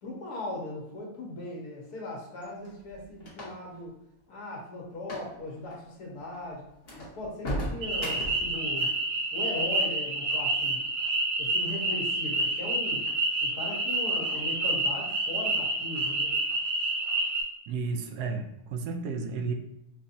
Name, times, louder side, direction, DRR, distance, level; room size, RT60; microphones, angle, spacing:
voice 1, 0.0-3.9 4.3-6.7 7.0-8.9 9.3-10.8 11.4-13.1 13.4-16.3, left 2 dB, 80° left, -2 dB, 1.6 m, -38 dB
sound 1, 2.4-3.8 5.0-5.3 5.6-5.8 6.3-6.4 6.8-8.5, equal, 45° left, 1.1 m, -36 dB
sound 2, 7.8-17.4, right 2 dB, 60° right, 1.1 m, -28 dB
voice 2, 17.7-19.5, right 4 dB, 85° right, 6 dB, 1.1 m, -32 dB
4.9 x 2.8 x 2.6 m, 0.88 s
omnidirectional pair, 1.6 m